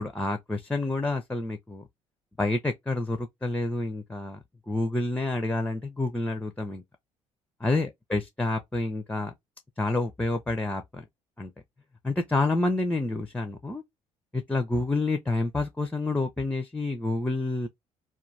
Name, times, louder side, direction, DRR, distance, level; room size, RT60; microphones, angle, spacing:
voice 1, 0.0-1.8 2.4-4.4 4.7-6.8 7.6-9.3 9.8-11.0 11.4-11.5 12.0-13.8 14.3-17.7, left 2 dB, 10° left, 0.6 m, -28 dB
2.4 x 2.3 x 3.1 m
figure-of-eight pair, 50°, 18 cm